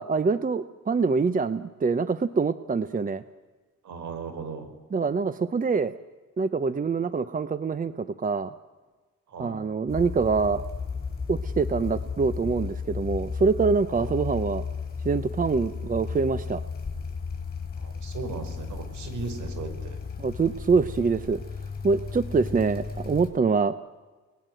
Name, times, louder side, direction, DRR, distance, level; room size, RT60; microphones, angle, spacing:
voice 1, 0.0-3.2 4.9-5.9 6.4-8.5 9.4-10.6 11.3-14.6 15.0-16.6 20.2-21.4 21.8-23.7, right 4 dB, 25° right, 13 dB, 0.9 m, -25 dB
voice 2, 3.8-4.7 9.3-9.6 13.9-14.1 17.8-20.0, right 4 dB, 70° right, 8 dB, 5.3 m, -37 dB
sound 1, 9.9-23.3, left 5 dB, 30° left, 6.8 m, -34 dB
29.5 x 20.0 x 7.9 m, 1.3 s
cardioid pair, 90°, 30 cm